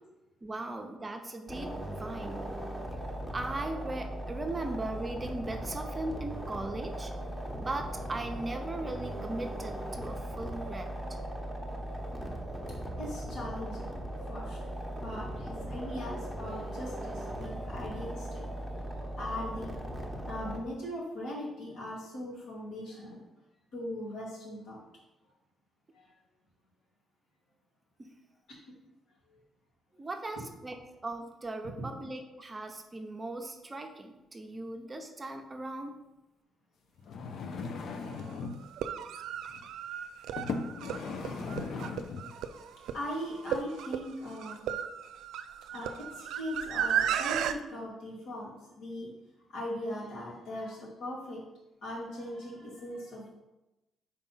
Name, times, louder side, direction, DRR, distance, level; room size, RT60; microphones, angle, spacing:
voice 1, 0.4-2.5 3.3-7.1 7.6-11.0 28.0-28.1 30.0-30.8 31.0-36.0 38.9-39.1, right 2 dB, 25° right, 4 dB, 0.7 m, -38 dB
sound 1, 1.5-20.6, right 1 dB, ahead, 1.1 m, -38 dB
voice 2, 13.0-13.8 14.3-14.6 15.0-19.8 20.2-23.2 23.7-24.8 25.9-26.1 30.4-30.5 40.8-40.9 42.2-42.6 42.9-44.6 45.7-48.5 48.8-49.1 49.5-51.4 51.8-53.3, left 1 dB, 80° left, -4 dB, 2.2 m, -40 dB
sound 2, 37.0-38.7 39.5-39.7 40.4-42.3 43.0-43.1, left 4 dB, 65° left, 0.5 m, -38 dB
sound 3, 37.5-37.6 38.6-47.5, right 9 dB, 85° right, 0.3 m, -34 dB
4.2 x 4.2 x 5.6 m, 0.99 s
cardioid pair, 90°, 0 cm